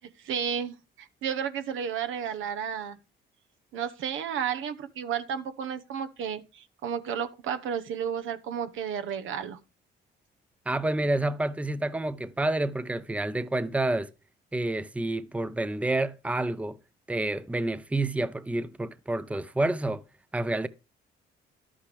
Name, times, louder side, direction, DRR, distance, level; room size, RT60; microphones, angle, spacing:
voice 1, 0.2-3.0 3.7-9.6, right 8 dB, 80° right, 1.0 m, -32 dB
voice 2, 10.7-14.1 14.5-16.8 17.1-20.0 20.3-20.7, right 2 dB, 5° right, 0.6 m, -29 dB
11.5 x 8.6 x 3.4 m
cardioid pair, 90°, 20 cm